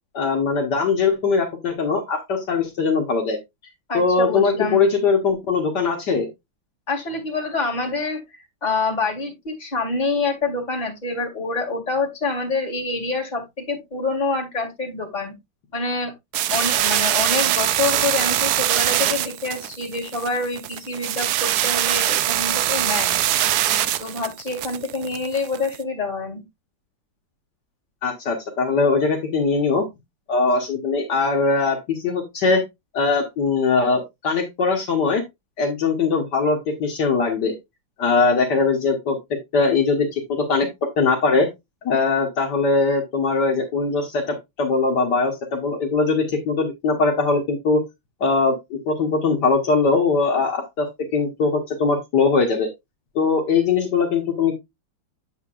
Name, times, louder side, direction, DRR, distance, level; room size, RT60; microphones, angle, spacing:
voice 1, 0.1-3.4 3.9-6.3 28.0-29.8 30.3-32.6 32.9-35.2 35.6-37.5 38.0-39.2 39.5-40.7 41.0-41.5 41.8-47.8 48.2-50.9 51.1-52.7 53.1-54.6, left 4 dB, 65° left, 1.7 m, -21 dB
voice 2, 3.9-4.8 6.9-15.3 15.7-16.1 16.5-23.2 24.0-26.4, left 3 dB, 20° left, 2.3 m, -26 dB
sound 1, 16.3-25.8, right 12 dB, 70° right, 1.0 m, -22 dB
8.0 x 7.5 x 2.4 m
omnidirectional pair, 2.1 m